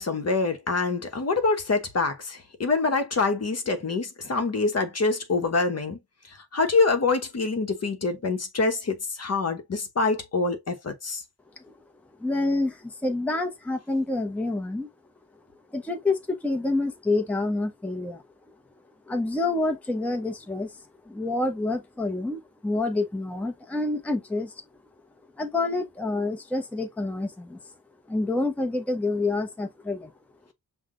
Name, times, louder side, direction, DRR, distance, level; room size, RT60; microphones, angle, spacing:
voice 1, 0.0-6.0 6.3-11.2, left 3 dB, 40° left, 1.0 m, -25 dB
voice 2, 12.2-14.9 15.7-18.2 19.1-24.6 25.4-27.6 28.1-30.1, left 2 dB, 5° left, 0.8 m, -28 dB
5.7 x 2.3 x 3.7 m
cardioid pair, 110°, 41 cm